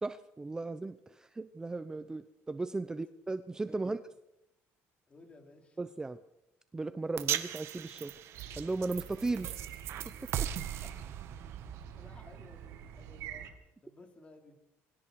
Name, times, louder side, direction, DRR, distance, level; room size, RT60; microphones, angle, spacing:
voice 1, 0.0-4.0 5.8-6.2 6.7-8.1 8.6-9.8 10.1-10.5, right 3 dB, 15° right, 12 dB, 0.8 m, -36 dB
voice 2, 3.7-4.0 5.1-5.8 10.8-10.9 12.0-14.6, left 2 dB, 25° left, 3 dB, 5.0 m, -57 dB
sound 1, 7.2-13.5, right 11 dB, 60° right, 1.8 m, -39 dB
sound 2, 8.3-13.5, right 9 dB, 80° right, 3.5 m, -47 dB
28.0 x 24.0 x 4.8 m, 0.89 s
cardioid pair, 130°, 5 cm